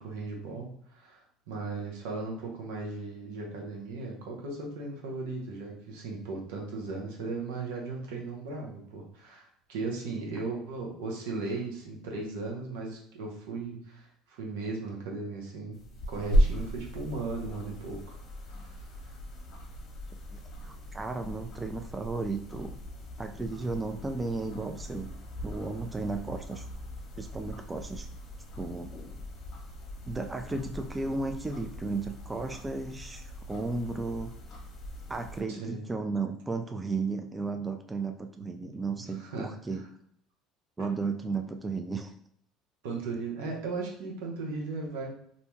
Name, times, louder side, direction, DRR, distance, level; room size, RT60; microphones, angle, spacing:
voice 1, 0.0-18.2 18.6-19.1 35.5-35.8 38.7-39.5 40.8-40.9 42.8-45.1, right 3 dB, 80° right, -1 dB, 0.8 m, -37 dB
sound 1, 15.7-35.4, equal, 55° left, 0.7 m, -36 dB
voice 2, 20.3-22.7 23.2-25.1 25.4-26.6 27.2-28.1 28.6-28.9 30.1-34.3 35.1-39.8 40.8-42.1, right 3 dB, 20° right, 5 dB, 0.3 m, -34 dB
2.6 x 2.2 x 3.1 m, 0.66 s
supercardioid pair, 80°, 0 cm